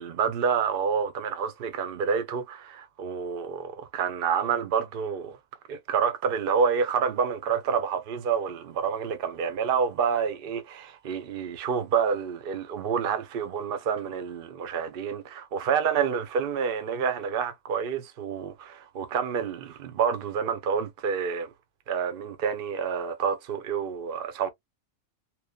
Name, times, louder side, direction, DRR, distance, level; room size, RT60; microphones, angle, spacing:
voice 1, 0.0-5.4 5.7-21.5 21.9-24.5, right 6 dB, 55° right, 0.8 m, -28 dB
2.9 x 2.4 x 2.2 m
omnidirectional pair, 1.3 m